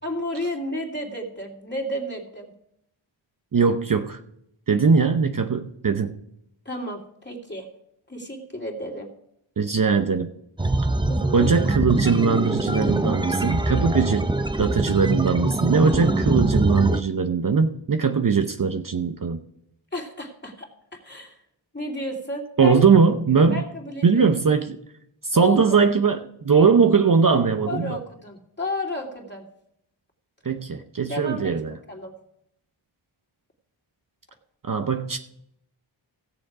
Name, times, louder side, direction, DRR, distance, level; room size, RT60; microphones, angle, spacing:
voice 1, 0.0-2.5 6.6-7.7 8.1-9.1 11.1-11.5 11.9-12.0 19.9-20.7 21.0-21.4 21.7-22.8 23.5-24.3 25.3-25.6 27.7-29.4 31.1-31.5 31.9-32.1, left 1 dB, 20° left, 0 dB, 2.7 m, -32 dB
voice 2, 3.5-4.2 4.7-6.1 9.6-10.3 11.3-14.3 14.6-19.4 22.6-23.6 24.0-24.8 25.2-28.0 30.4-31.7 34.6-35.2, right 5 dB, 40° right, 6 dB, 0.8 m, -20 dB
sound 1, 10.6-17.0, right 2 dB, 10° right, 0.6 m, -23 dB
16.5 x 7.0 x 4.9 m, 0.76 s
wide cardioid pair, 95°, 49 cm